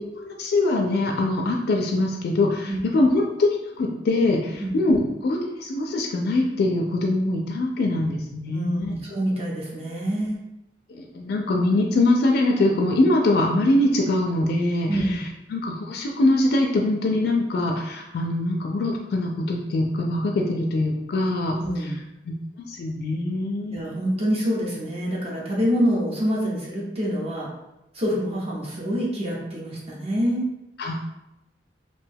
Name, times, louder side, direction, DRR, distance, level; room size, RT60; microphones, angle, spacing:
voice 1, 0.0-8.9 10.9-15.0 15.5-21.6 22.3-22.4 22.7-23.8 30.8-30.9, left 2 dB, 60° left, 1 dB, 0.3 m, -23 dB
voice 2, 8.5-10.4 14.9-15.2 21.5-22.0 23.7-27.5 27.9-30.5, equal, 35° right, -4 dB, 0.7 m, -26 dB
2.6 x 2.2 x 3.3 m, 0.91 s
head